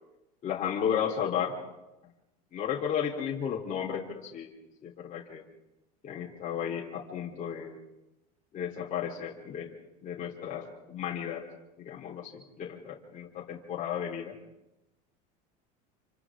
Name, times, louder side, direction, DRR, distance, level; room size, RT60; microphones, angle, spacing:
voice 1, 0.4-1.6 2.5-4.5 4.8-5.4 6.0-7.8 8.5-9.8 10.0-11.4 11.8-14.3, left 8 dB, 40° left, -3 dB, 3.7 m, -34 dB
28.0 x 25.5 x 3.8 m, 0.97 s
supercardioid pair, 115°, 20 cm